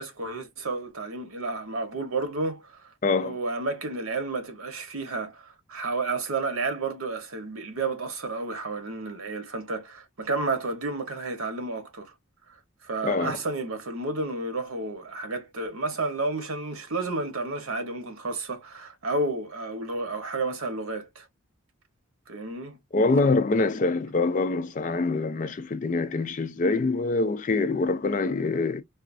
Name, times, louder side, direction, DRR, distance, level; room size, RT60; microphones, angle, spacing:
voice 1, 0.0-2.8 3.1-12.1 12.8-21.3 22.3-22.8, right 3 dB, 90° right, 1.0 m, -31 dB
voice 2, 3.0-3.4 13.0-13.4 22.9-28.8, left 3 dB, 35° left, 0.4 m, -25 dB
4.0 x 2.4 x 2.4 m
head